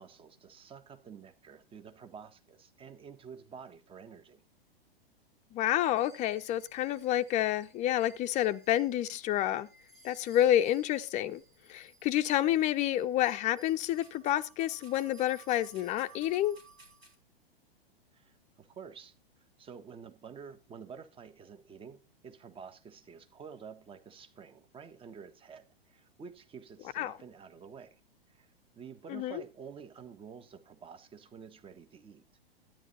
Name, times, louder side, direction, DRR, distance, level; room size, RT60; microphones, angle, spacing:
voice 1, 0.0-4.4 18.1-19.1 19.6-28.0 28.3-32.2, right 6 dB, 15° right, 1.4 m, -49 dB
voice 2, 5.5-9.7 10.0-11.4 11.7-16.6 27.0-27.1 29.1-29.4, left 12 dB, 25° left, 0.7 m, -29 dB
sound 1, 5.9-17.1, right 2 dB, 80° right, 4.9 m, -58 dB
12.5 x 10.5 x 4.1 m
figure-of-eight pair, 105°, 30 cm